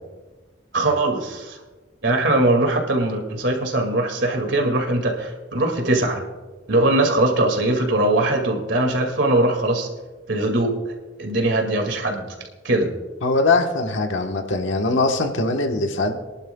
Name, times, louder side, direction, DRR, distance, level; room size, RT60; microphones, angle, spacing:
voice 1, 0.7-1.6 2.0-6.2 6.7-9.9 10.3-10.7 11.2-12.3 12.6-12.9, right 2 dB, 70° right, 3 dB, 2.2 m, -21 dB
voice 2, 13.2-16.2, left 3 dB, 80° left, 4 dB, 1.3 m, -21 dB
25.0 x 11.5 x 2.3 m, 1.2 s
head